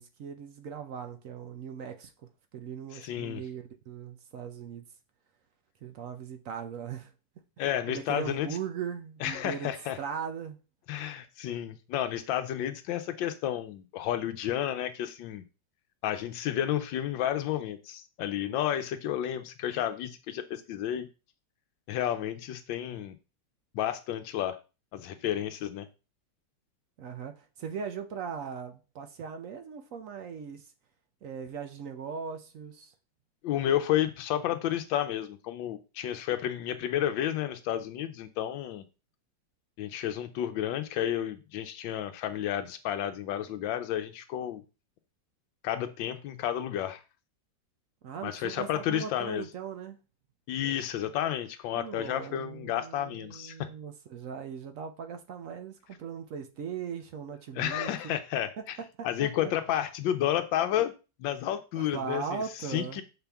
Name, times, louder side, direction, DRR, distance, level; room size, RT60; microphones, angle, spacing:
voice 1, 0.0-2.1 2.5-4.8 5.8-7.1 7.9-9.7 10.0-10.6 27.0-30.7 31.2-32.9 48.0-50.0 51.7-58.2 59.0-59.3 61.7-63.0, right 7 dB, 65° right, 0.8 m, -39 dB
voice 2, 2.9-3.4 7.6-8.5 9.2-10.0 10.9-15.4 16.0-21.1 21.9-23.1 23.7-24.6 24.9-25.9 33.4-38.8 39.8-44.6 45.6-47.0 48.2-49.4 50.5-53.7 57.5-58.8 59.0-60.9 61.2-62.4 62.7-63.0, left 11 dB, 85° left, 1.3 m, -31 dB
6.9 x 4.3 x 3.4 m
omnidirectional pair, 2.0 m